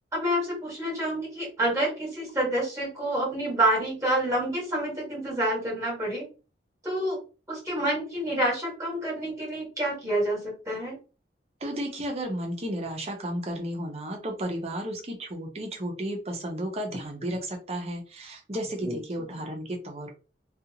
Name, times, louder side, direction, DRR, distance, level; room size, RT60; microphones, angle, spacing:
voice 1, 0.1-6.3 6.8-7.2 7.5-11.0 18.8-19.5, right 1 dB, 15° right, -4 dB, 1.3 m, -28 dB
voice 2, 11.6-20.1, right 1 dB, 35° right, 2 dB, 0.7 m, -33 dB
2.5 x 2.4 x 2.8 m, 0.33 s
head